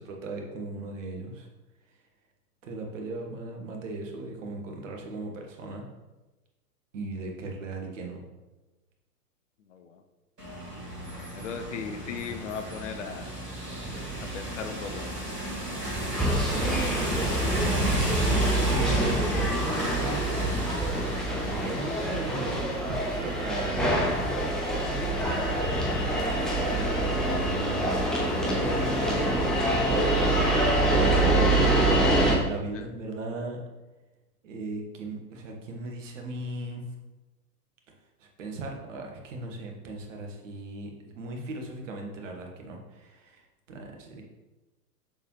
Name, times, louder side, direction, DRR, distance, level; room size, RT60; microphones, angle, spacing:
voice 1, 0.0-1.5 2.6-5.8 6.9-8.2 15.5-17.1 17.4-18.0 18.3-22.6 22.9-24.3 26.5-30.0 30.7-31.6 32.4-33.6 34.4-36.9 38.2-44.2, right 2 dB, 50° right, 2 dB, 1.4 m, -38 dB
voice 2, 9.6-10.0 11.3-13.3 14.2-15.1 17.7-17.9 32.7-32.9, left 6 dB, 50° left, 7 dB, 0.7 m, -38 dB
sound 1, 10.4-22.6, right 1 dB, 80° right, 2.0 m, -31 dB
sound 2, 16.2-32.4, right 1 dB, ahead, 0.9 m, -26 dB
6.9 x 5.5 x 3.1 m, 1.1 s
figure-of-eight pair, 100°, 47 cm